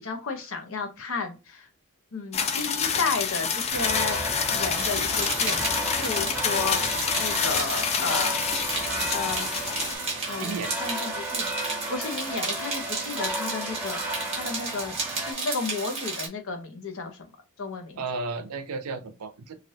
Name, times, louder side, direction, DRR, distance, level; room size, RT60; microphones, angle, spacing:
voice 1, 0.0-1.7 2.1-4.2 4.5-6.8 7.2-8.5 9.1-9.7 10.3-10.5 10.8-14.0 14.4-14.9 15.2-17.3 17.6-18.0, left 4 dB, 65° left, 0.8 m, -33 dB
sound 1, 2.3-9.9, left 6 dB, 30° left, 0.3 m, -28 dB
sound 2, 3.7-15.3, right 1 dB, 10° right, 0.9 m, -34 dB
sound 3, 4.8-16.3, right 3 dB, 25° right, 1.1 m, -33 dB
voice 2, 10.4-10.7 18.0-19.5, right 4 dB, 85° right, 0.6 m, -33 dB
3.3 x 2.4 x 2.7 m
head